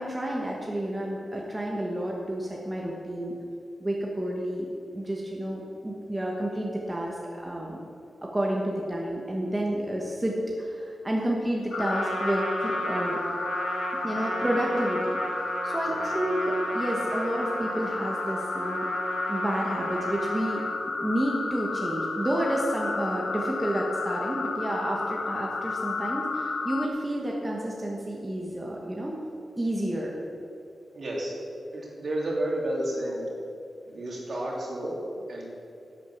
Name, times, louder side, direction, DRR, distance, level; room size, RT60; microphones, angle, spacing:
voice 1, 0.0-3.3 3.8-4.7 4.9-7.8 8.2-13.2 14.0-15.2 15.6-18.9 19.3-20.6 21.0-29.2 29.6-30.1, right 1 dB, 15° right, -2 dB, 1.4 m, -30 dB
sound 1, 11.7-26.9, left 4 dB, 65° left, 1.0 m, -32 dB
Trumpet, 11.8-20.8, right 3 dB, 70° right, 1.3 m, -35 dB
voice 2, 30.9-31.3 31.7-33.3 33.9-35.0 35.3-35.4, right 1 dB, 55° right, -3 dB, 3.2 m, -31 dB
11.0 x 9.1 x 7.1 m, 2.7 s
wide cardioid pair, 135°, 0 cm